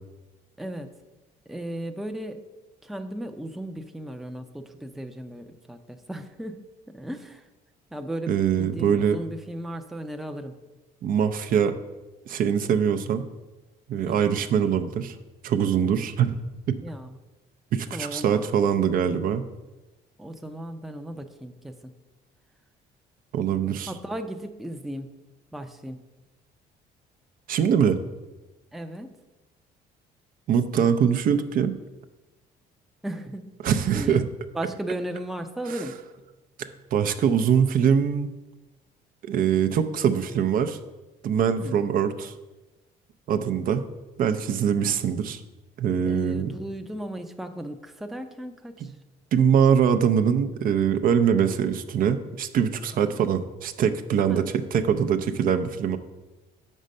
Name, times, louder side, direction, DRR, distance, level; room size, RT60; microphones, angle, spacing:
voice 1, 0.6-0.9 1.5-2.4 2.8-7.5 7.9-8.3 8.6-10.5 14.1-14.4 16.8-17.2 17.9-18.4 20.2-21.9 23.9-25.1 25.5-26.0 28.7-29.1 33.0-33.5 33.9-34.3 34.5-35.9 41.6-41.7 46.1-48.9 52.9-53.2 54.3-54.5, right 1 dB, ahead, 6 dB, 0.5 m, -36 dB
voice 2, 8.3-9.2 11.0-11.7 12.3-13.2 13.9-15.1 15.4-16.4 17.7-19.4 23.3-23.9 27.5-28.0 30.5-31.7 33.6-34.2 36.9-38.3 39.2-40.8 41.2-42.3 43.3-43.8 44.2-45.4 45.8-46.5 49.3-56.0, right 8 dB, 55° right, 8 dB, 0.5 m, -23 dB
5.4 x 5.1 x 6.4 m, 1.1 s
cardioid pair, 110°, 17 cm